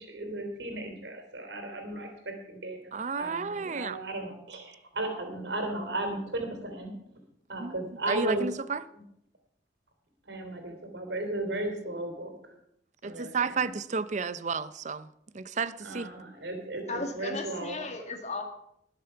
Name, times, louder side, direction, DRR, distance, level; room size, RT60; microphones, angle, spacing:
voice 1, 0.1-2.8 3.2-6.9 7.5-8.4 10.2-12.3 13.0-13.7 15.8-17.8, right 2 dB, 85° right, 3.3 m, -35 dB
voice 2, 2.9-4.0 7.6-7.8 8.1-8.8 13.0-15.1 15.3-16.1, right 5 dB, 40° right, 0.6 m, -32 dB
voice 3, 16.9-18.4, left 3 dB, 40° left, 2.0 m, -35 dB
20.0 x 6.9 x 5.8 m
head